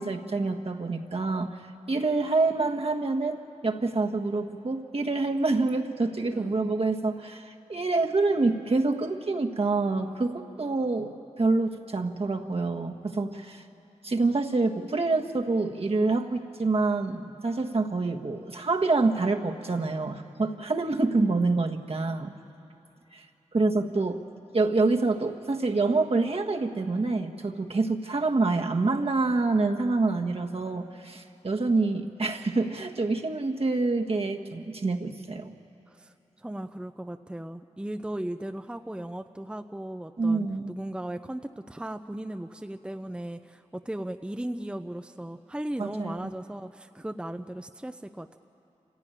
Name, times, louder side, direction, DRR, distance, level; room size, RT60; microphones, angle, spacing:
voice 1, 0.0-1.6 1.9-3.4 3.6-13.6 14.0-22.3 23.1-23.2 23.5-24.2 24.5-35.5 40.2-40.7 45.8-46.3, right 3 dB, 55° right, 3 dB, 1.5 m, -27 dB
voice 2, 6.3-6.8 35.9-48.4, right 1 dB, 10° right, 8 dB, 0.6 m, -37 dB
27.0 x 15.5 x 9.1 m, 2.9 s
cardioid pair, 55°, 12 cm